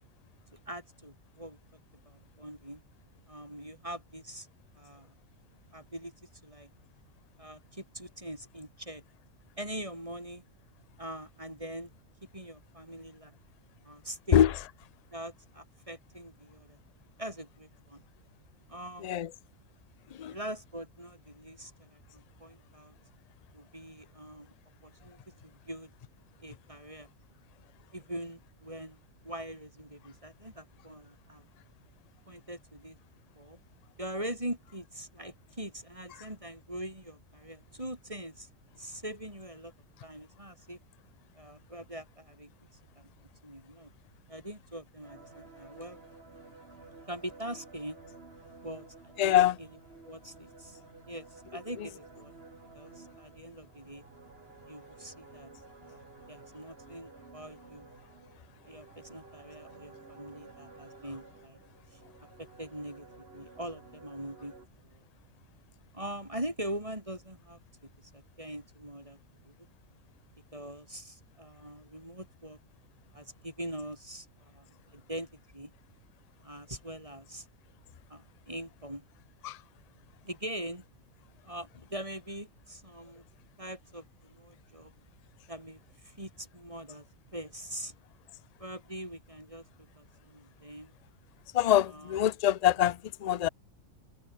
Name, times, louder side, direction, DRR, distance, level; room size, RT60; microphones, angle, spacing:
voice 1, 0.7-1.6 2.1-2.8 3.3-4.5 4.8-5.1 5.7-6.7 7.4-9.0 9.6-10.4 11.0-11.9 12.3-13.4 13.8-14.4 15.1-16.8 17.2-18.0 18.7-19.2 20.3-22.9 23.5-24.5 24.8-25.9 26.4-27.1 27.9-31.5 32.3-33.0 33.4-33.6 34.0-38.5 38.8-39.7 40.0-40.8 41.4-42.5 43.0-43.1 43.4-43.9 44.3-46.0 47.1-48.0 48.6-49.4 50.0-50.8 51.1-52.3 52.7-54.0 54.7-55.5 55.8-56.0 56.3-57.9 58.7-61.6 61.9-62.0 62.4-64.5 64.8-65.0 65.9-69.7 70.5-72.6 73.1-75.3 75.5-75.7 76.4-77.5 78.1-79.0 80.2-80.8 81.4-83.2 83.6-84.9 85.5-87.1 87.3-87.9 88.6-89.6 90.0-90.9 91.9-92.2, right 1 dB, 25° right, 6.0 m, -43 dB
sound 1, 45.0-64.7, right 3 dB, 45° right, 2.6 m, -53 dB
voice 2, 49.2-49.6 79.4-79.6 91.5-93.5, left 11 dB, 65° left, 0.4 m, -24 dB
omnidirectional pair, 1.4 m